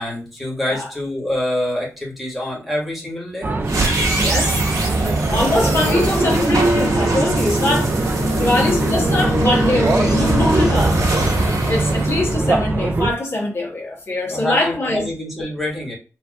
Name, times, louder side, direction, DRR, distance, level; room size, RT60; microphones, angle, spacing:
voice 1, 0.0-3.5 5.4-5.6 11.5-11.9 14.3-15.9, left 1 dB, ahead, 1.5 m, -26 dB
sound 1, 3.4-13.1, right 3 dB, 35° right, 0.4 m, -23 dB
sound 2, 3.6-12.9, right 1 dB, 90° right, 1.9 m, -21 dB
voice 2, 4.1-4.7 5.3-11.0 11.7-15.1, left 2 dB, 50° left, 1.2 m, -22 dB
4.5 x 2.6 x 2.3 m
wide cardioid pair, 130°, 5 cm